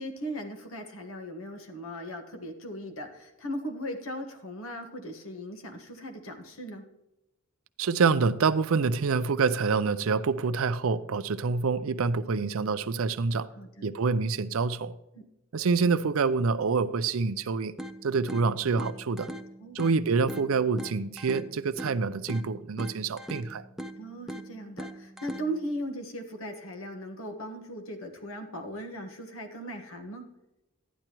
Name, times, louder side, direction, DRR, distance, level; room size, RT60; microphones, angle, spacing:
voice 1, 0.0-6.8 13.6-13.9 15.1-15.3 19.6-19.8 24.0-30.3, equal, 75° left, 1.4 m, -38 dB
voice 2, 7.8-13.5 13.8-14.9 15.5-17.7 18.0-19.3 19.7-23.6, right 4 dB, 75° right, 0.5 m, -26 dB
sound 1, 17.8-25.8, equal, ahead, 0.4 m, -42 dB
12.0 x 10.0 x 3.0 m
head